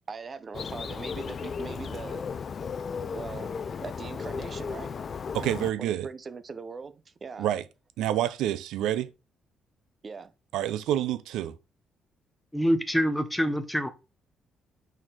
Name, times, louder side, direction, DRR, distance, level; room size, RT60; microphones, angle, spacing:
voice 1, 0.1-2.2 3.0-3.5 3.8-4.9 5.8-7.5 10.0-10.3, right 5 dB, 40° right, 0.7 m, -40 dB
Bird, 0.5-5.7, left 6 dB, 45° left, 0.5 m, -35 dB
voice 2, 5.3-6.1 7.4-7.6 8.0-9.1 10.5-11.6, right 12 dB, 90° right, 0.6 m, -28 dB
voice 3, 12.5-13.9, equal, 5° left, 1.1 m, -25 dB
6.1 x 4.5 x 3.8 m
cardioid pair, 90°, 0 cm